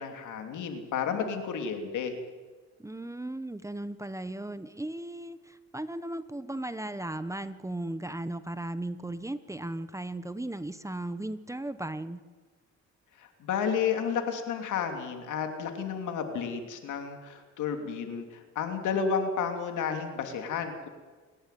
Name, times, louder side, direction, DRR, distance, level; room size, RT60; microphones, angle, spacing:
voice 1, 0.0-2.1 13.2-20.9, left 6 dB, 80° left, 5 dB, 3.1 m, -32 dB
voice 2, 2.8-12.2, right 1 dB, 10° right, 12 dB, 1.1 m, -36 dB
28.0 x 11.5 x 9.3 m, 1.4 s
cardioid pair, 90°, 30 cm